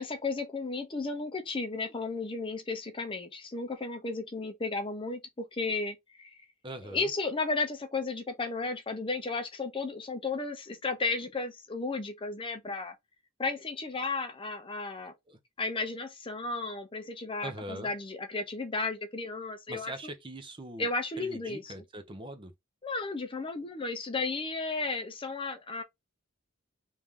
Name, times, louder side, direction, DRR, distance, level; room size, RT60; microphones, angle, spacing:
voice 1, 0.0-6.3 6.8-12.9 13.4-15.1 15.6-19.9 20.8-21.7 22.8-25.8, left 3 dB, 25° left, 0.6 m, -34 dB
voice 2, 6.6-7.1 15.3-15.4 17.4-17.9 19.7-20.9 21.2-22.5, right 1 dB, 25° right, 0.6 m, -42 dB
3.2 x 2.7 x 3.5 m
head